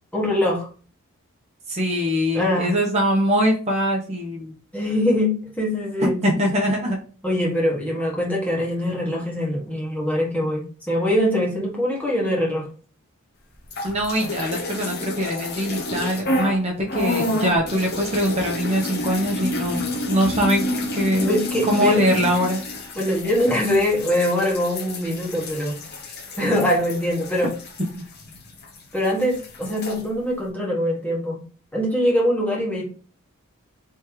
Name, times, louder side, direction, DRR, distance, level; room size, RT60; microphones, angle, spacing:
voice 1, 0.1-0.7 2.3-2.7 4.7-6.2 7.2-12.7 21.2-22.0 22.9-25.7 26.4-27.5 28.9-31.4 31.7-32.8, left 1 dB, 5° left, -4 dB, 1.4 m, -23 dB
voice 2, 1.7-4.5 6.0-7.0 13.8-20.6 20.9-21.3 21.7-22.6 27.9-28.0 29.6-29.7, equal, 30° right, -1 dB, 0.9 m, -22 dB
sound 1, 13.6-16.6 16.9-28.8 29.0-30.0, left 1 dB, 45° left, 0.9 m, -29 dB
3.5 x 3.2 x 4.6 m, 0.39 s
head